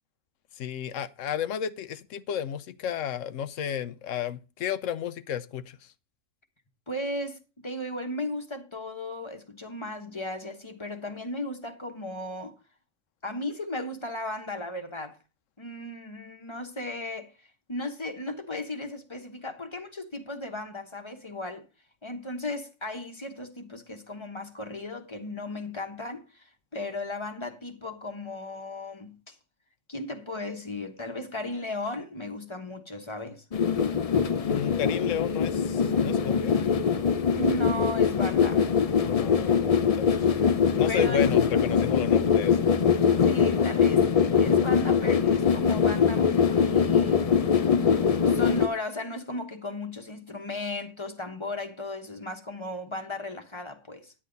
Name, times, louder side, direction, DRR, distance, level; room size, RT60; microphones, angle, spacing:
voice 1, 0.6-5.8 34.5-36.5 39.0-40.3 40.8-42.7, left 9 dB, 75° left, 1.1 m, -32 dB
voice 2, 6.9-12.5 13.2-15.2 15.6-21.6 22.0-29.3 29.9-33.4 37.4-38.7 40.6-41.3 43.2-44.1 44.4-47.3 48.2-54.1, left 1 dB, 25° left, 1.1 m, -36 dB
sound 1, 33.5-48.7, left 6 dB, 45° left, 0.5 m, -23 dB
10.0 x 9.8 x 3.9 m
omnidirectional pair, 1.3 m